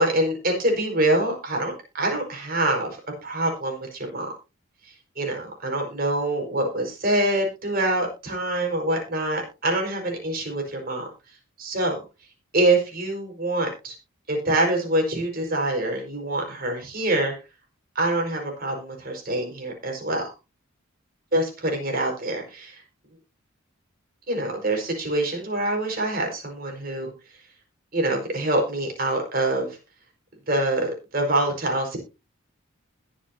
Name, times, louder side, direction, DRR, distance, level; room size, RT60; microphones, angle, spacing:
voice 1, 0.0-4.3 5.1-11.1 11.6-12.0 12.5-13.9 14.3-17.3 17.9-20.3 21.3-22.8 24.3-27.1 27.9-29.8 30.5-32.0, right 1 dB, 45° right, 2 dB, 5.1 m, -25 dB
21.0 x 7.5 x 2.8 m, 0.28 s
head